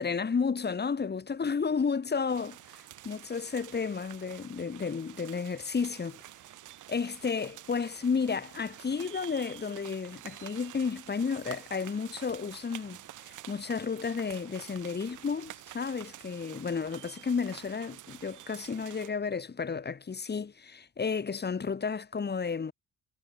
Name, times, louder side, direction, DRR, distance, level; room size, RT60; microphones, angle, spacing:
voice 1, 0.0-2.6 3.0-6.2 6.9-22.7, left 5 dB, 35° left, 2.6 m, -32 dB
sound 1, 2.3-19.1, right 13 dB, 80° right, 7.0 m, -49 dB
cardioid pair, 90°, 30 cm